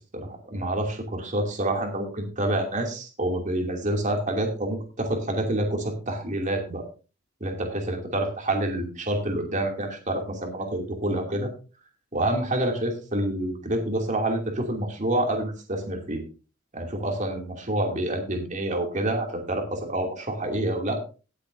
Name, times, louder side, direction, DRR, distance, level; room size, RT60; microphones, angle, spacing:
voice 1, 0.1-6.8 7.4-11.5 12.1-16.2 16.7-21.0, right 1 dB, 40° right, 2 dB, 2.7 m, -27 dB
18.0 x 8.3 x 2.7 m, 0.33 s
head